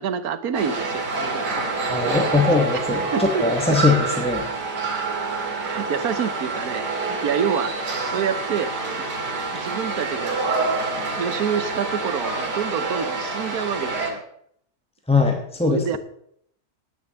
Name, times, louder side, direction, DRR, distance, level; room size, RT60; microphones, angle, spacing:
voice 1, 0.0-3.4 3.7-3.8 5.4-8.7 9.5-10.4 11.2-14.2 15.6-16.0, right 7 dB, 65° right, 12 dB, 1.3 m, -28 dB
sound 1, 0.5-14.1, right 3 dB, 90° right, 2.6 m, -27 dB
voice 2, 1.9-4.4 15.1-16.0, left 4 dB, 5° left, 3 dB, 0.8 m, -21 dB
10.5 x 9.2 x 6.9 m, 0.69 s
omnidirectional pair, 1.7 m